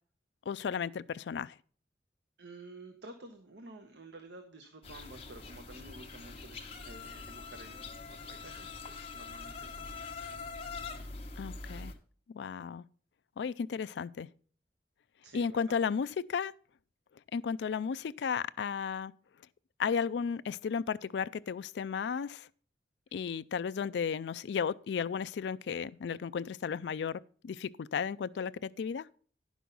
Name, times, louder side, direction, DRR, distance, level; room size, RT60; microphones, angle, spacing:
voice 1, 0.5-1.6 11.4-11.9 12.3-12.8 13.4-14.3 15.3-16.5 17.3-19.1 19.8-22.5 23.1-29.1, left 6 dB, 75° left, 0.4 m, -34 dB
voice 2, 2.4-10.3 15.2-15.8 23.1-23.2, right 2 dB, 85° right, 1.0 m, -51 dB
sound 1, 4.8-11.9, left 4 dB, 35° left, 1.2 m, -44 dB
10.0 x 6.2 x 5.3 m
head